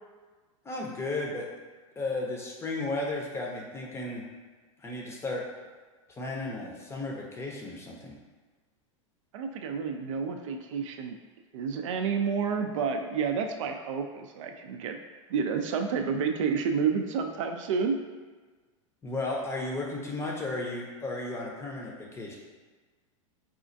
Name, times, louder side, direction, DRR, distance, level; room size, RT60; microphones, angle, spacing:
voice 1, 0.6-1.5 2.0-4.2 4.8-5.4 6.2-8.1 19.0-22.4, left 2 dB, 15° left, -1 dB, 0.6 m, -34 dB
voice 2, 9.3-11.2 11.5-15.0 15.3-18.0, right 6 dB, 70° right, 4 dB, 0.4 m, -30 dB
4.2 x 2.4 x 2.5 m, 1.4 s
hypercardioid pair, 110°, 17 cm